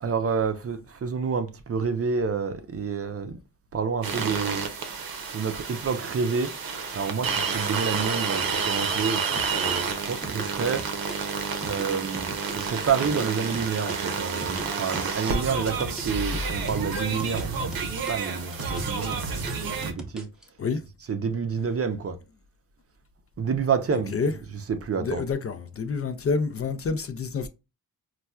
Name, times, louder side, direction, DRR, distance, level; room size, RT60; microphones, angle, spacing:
voice 1, 0.0-3.3 3.7-4.6 5.3-6.5 6.9-10.8 11.7-19.5 19.8-20.3 21.1-22.1 23.4-25.3, right 5 dB, 40° right, 0.5 m, -29 dB
sound 1, 4.0-19.9, right 5 dB, 70° right, 0.7 m, -30 dB
sound 2, 9.3-14.0 14.4-17.5 17.7-20.4, right 1 dB, ahead, 0.7 m, -40 dB
voice 2, 23.9-24.3 25.0-27.5, left 4 dB, 40° left, 0.4 m, -28 dB
4.2 x 2.3 x 2.2 m
cardioid pair, 75°, 37 cm